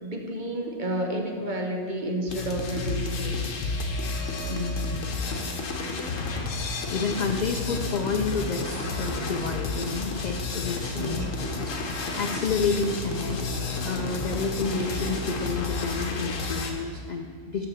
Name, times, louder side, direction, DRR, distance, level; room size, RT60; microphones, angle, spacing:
voice 1, 0.0-3.4 10.9-11.3 11.8-11.9, right 1 dB, 45° right, 2 dB, 0.9 m, -31 dB
sound 1, 2.3-16.7, left 3 dB, 80° left, 1.3 m, -31 dB
voice 2, 4.4-5.1 6.6-11.3 11.6-13.4 13.8-17.7, left 4 dB, 60° left, 3 dB, 0.4 m, -30 dB
6.9 x 6.0 x 7.1 m, 2.2 s
omnidirectional pair, 1.3 m